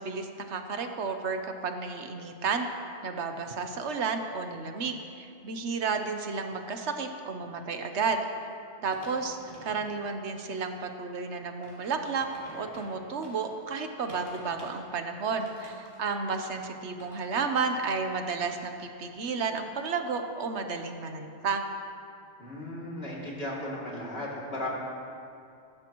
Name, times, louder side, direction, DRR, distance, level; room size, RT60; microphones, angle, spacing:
voice 1, 0.0-2.7 3.0-8.2 8.8-12.3 12.5-21.6, right 4 dB, 75° right, 5 dB, 1.2 m, -32 dB
sound 1, 8.9-10.0 10.4-10.7 11.3-13.5 13.9-14.8 15.2-17.4 17.6-17.9, equal, 30° right, 3.0 m, -49 dB
voice 2, 22.4-24.7, left 1 dB, 60° left, -5 dB, 2.9 m, -36 dB
20.5 x 11.5 x 3.0 m, 2.5 s
omnidirectional pair, 1.2 m